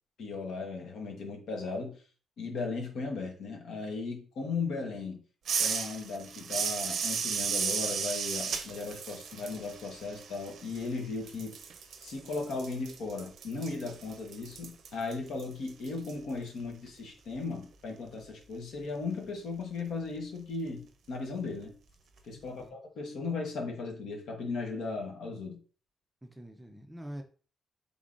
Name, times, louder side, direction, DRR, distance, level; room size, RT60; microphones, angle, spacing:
voice 1, 0.2-2.0 2.4-5.2 5.6-11.6 12.0-21.7 22.2-25.6, left 4 dB, 70° left, 1 dB, 1.1 m, -37 dB
sound 1, 5.5-11.0 11.3-16.1, right 6 dB, 60° right, 0.5 m, -35 dB
voice 2, 22.5-22.8 26.2-27.2, equal, 5° right, 4 dB, 0.5 m, -45 dB
3.7 x 3.6 x 2.5 m, 0.39 s
cardioid pair, 130°, 0 cm